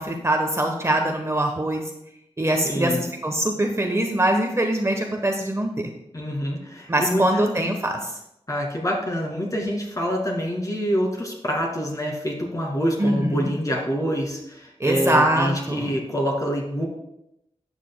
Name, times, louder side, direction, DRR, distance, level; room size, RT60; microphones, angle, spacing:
voice 1, 0.0-1.8 2.4-5.9 6.9-8.1 13.0-13.5 14.8-16.0, right 1 dB, 25° right, 3 dB, 1.0 m, -23 dB
voice 2, 2.6-3.0 6.1-7.5 8.5-16.9, equal, 30° left, 0 dB, 2.2 m, -26 dB
12.0 x 8.3 x 2.2 m, 0.82 s
wide cardioid pair, 90°, 11 cm